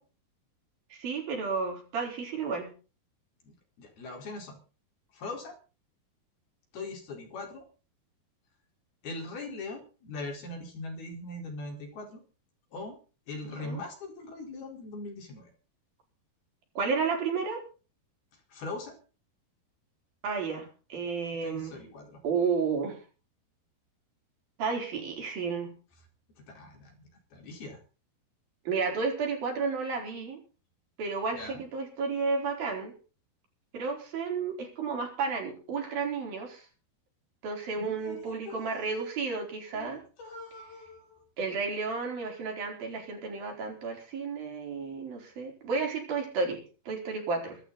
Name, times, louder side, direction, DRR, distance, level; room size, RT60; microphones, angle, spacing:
voice 1, 0.9-2.7 13.4-13.8 16.8-17.6 20.2-21.8 22.2-23.0 24.6-25.7 28.7-30.4 31.0-32.9 33.7-36.6 37.4-40.0 41.4-47.6, right 4 dB, 60° right, 2 dB, 6.0 m, -32 dB
voice 2, 3.4-4.6 5.1-5.6 6.7-7.6 9.0-12.2 12.7-13.0 13.3-15.5 18.5-19.0 21.4-22.2 26.5-26.9 27.3-27.8 31.4-31.6 37.8-38.9 39.7-41.2, left 2 dB, 70° left, 2 dB, 6.4 m, -41 dB
23.5 x 13.0 x 4.1 m, 0.36 s
omnidirectional pair, 4.7 m